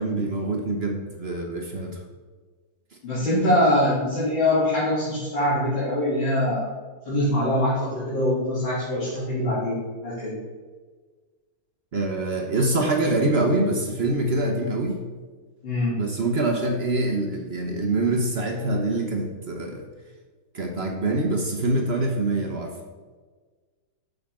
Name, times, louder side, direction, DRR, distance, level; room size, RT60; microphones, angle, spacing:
voice 1, 0.0-2.0 11.9-15.0 16.0-19.8 20.5-22.7, right 2 dB, 50° right, 2 dB, 0.8 m, -25 dB
voice 2, 3.0-6.7 7.0-10.4 15.6-16.0, left 1 dB, 80° left, -12 dB, 3.6 m, -23 dB
8.4 x 6.7 x 3.7 m, 1.4 s
omnidirectional pair, 2.1 m